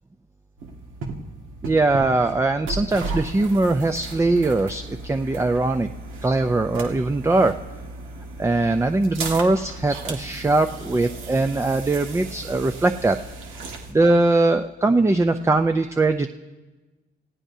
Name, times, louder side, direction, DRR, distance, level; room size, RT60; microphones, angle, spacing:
sound 1, 0.6-13.9, right 3 dB, 85° right, 1.9 m, -35 dB
voice 1, 1.6-5.9 6.2-7.5 8.4-13.4 13.9-16.3, right 2 dB, 15° right, 7 dB, 0.5 m, -21 dB
28.5 x 16.5 x 2.8 m, 1.2 s
cardioid pair, 90°, 20 cm